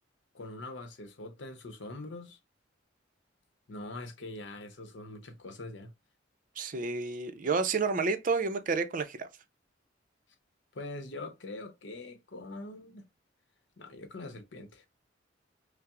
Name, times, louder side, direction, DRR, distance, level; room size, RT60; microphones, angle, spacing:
voice 1, 0.3-2.4 3.7-5.9 10.7-13.0 13.8-14.9, left 2 dB, 70° left, 0.8 m, -43 dB
voice 2, 6.6-9.3, right 4 dB, 45° right, 0.5 m, -30 dB
5.7 x 2.0 x 2.4 m
head